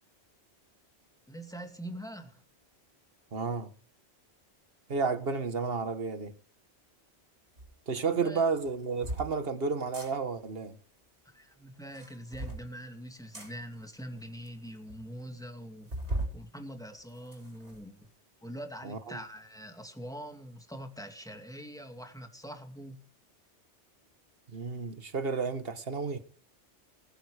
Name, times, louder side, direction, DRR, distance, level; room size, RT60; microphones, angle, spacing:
voice 1, 1.3-2.4 8.0-8.4 11.2-15.9 16.3-18.1 18.4-23.0, equal, 5° left, 2.4 m, -43 dB
voice 2, 3.3-3.7 4.9-6.3 7.9-10.8 18.8-19.2 24.5-26.2, right 5 dB, 60° right, 1.7 m, -31 dB
sound 1, 7.6-7.7 8.6-9.3 9.8-10.1 11.8-12.6 13.3-13.5 14.2-14.3 14.5-14.6 14.9-15.0 15.9-16.4 16.8-17.8, right 1 dB, 75° right, 5.0 m, -37 dB
20.5 x 9.1 x 5.1 m
omnidirectional pair, 1.1 m